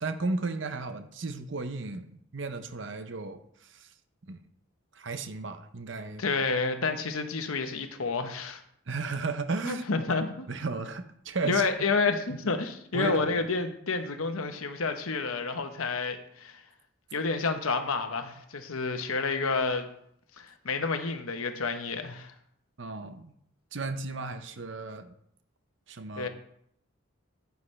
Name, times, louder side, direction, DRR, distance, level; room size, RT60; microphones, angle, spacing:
voice 1, 0.0-3.9 4.2-4.4 4.9-6.2 8.9-9.9 10.5-11.6 12.9-13.3 22.8-23.3 23.7-25.1 25.9-26.3, right 3 dB, 60° right, 9 dB, 0.8 m, -34 dB
voice 2, 6.2-8.6 9.6-10.5 11.4-16.6 17.1-19.8 20.4-22.3 26.2-26.3, left 4 dB, 85° left, 7 dB, 1.0 m, -29 dB
9.8 x 8.1 x 3.3 m, 0.70 s
head